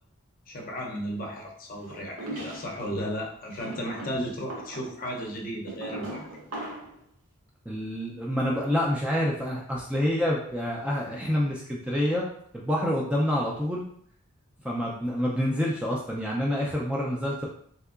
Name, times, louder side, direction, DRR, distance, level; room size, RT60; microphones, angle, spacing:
voice 1, 0.5-6.3, equal, 40° left, 0 dB, 0.6 m, -34 dB
sound 1, 1.9-2.9 3.5-7.0, right 1 dB, 85° right, 0.8 m, -39 dB
voice 2, 7.7-12.3 12.5-13.8 14.6-17.5, equal, 5° right, -3 dB, 0.3 m, -27 dB
3.4 x 2.8 x 2.3 m, 0.64 s
head